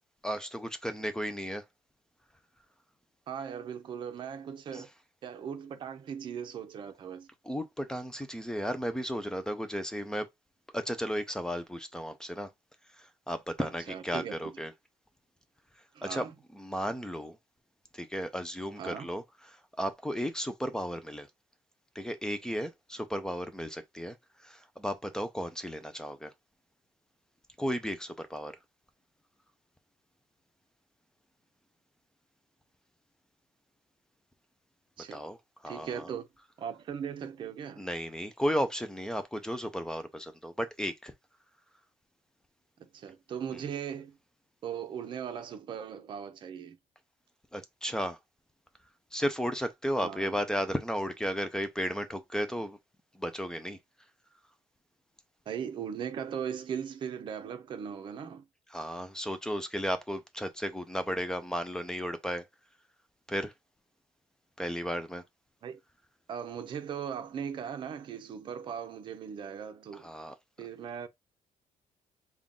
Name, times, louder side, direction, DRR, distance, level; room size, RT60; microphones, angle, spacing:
voice 1, 0.2-1.6 4.7-4.8 7.4-10.3 10.7-12.5 13.0-14.7 16.0-16.3 16.5-17.4 17.9-21.3 22.0-26.3 27.6-28.5 35.1-35.4 35.6-36.1 37.8-41.1 47.5-48.2 49.1-52.8 53.1-53.8 58.7-62.4 63.3-63.5 64.6-65.2 69.9-70.3, equal, 5° left, 0.4 m, -34 dB
voice 2, 3.3-4.9 5.2-7.3 13.6-14.4 15.9-16.3 18.8-19.1 35.0-35.2 35.7-36.3 36.6-37.8 42.8-44.2 44.6-46.8 50.0-50.4 55.5-58.4 65.6-65.8 66.3-70.1 70.6-71.1, right 8 dB, 40° right, 0.6 m, -38 dB
3.7 x 2.3 x 3.7 m
cardioid pair, 170°, 13 cm